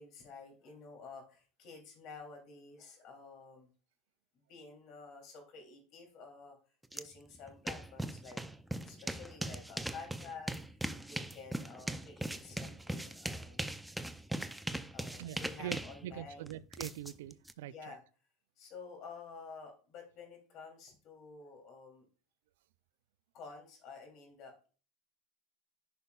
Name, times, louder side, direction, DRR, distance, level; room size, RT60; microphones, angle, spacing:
voice 1, 0.0-3.7 4.5-6.6 6.9-8.4 8.8-10.6 11.1-13.8 14.9-16.5 17.6-18.0 18.6-22.0 23.3-24.7, left 4 dB, 50° left, 2.9 m, -51 dB
sound 1, 6.9-7.0 7.3-17.5, right 1 dB, 5° right, 0.4 m, -40 dB
voice 2, 15.2-15.8 16.0-18.0, right 13 dB, 80° right, 0.4 m, -43 dB
10.5 x 5.6 x 2.3 m
supercardioid pair, 115°, 0 cm